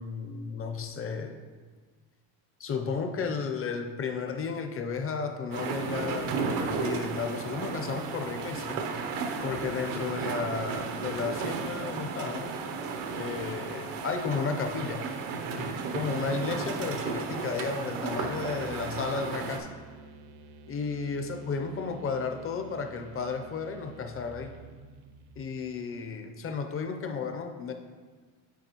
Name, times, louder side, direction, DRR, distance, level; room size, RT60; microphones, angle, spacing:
voice 1, 0.0-1.4 2.6-8.8 9.4-12.6 13.1-15.0 15.6-19.7 20.7-24.5 25.4-27.7, left 5 dB, 30° left, 5 dB, 0.6 m, -33 dB
sound 1, 5.5-19.6, right 5 dB, 85° right, 0.8 m, -34 dB
sound 2, 18.2-25.9, right 3 dB, 55° right, 0.6 m, -50 dB
9.4 x 4.1 x 2.9 m, 1.5 s
cardioid pair, 105°, 47 cm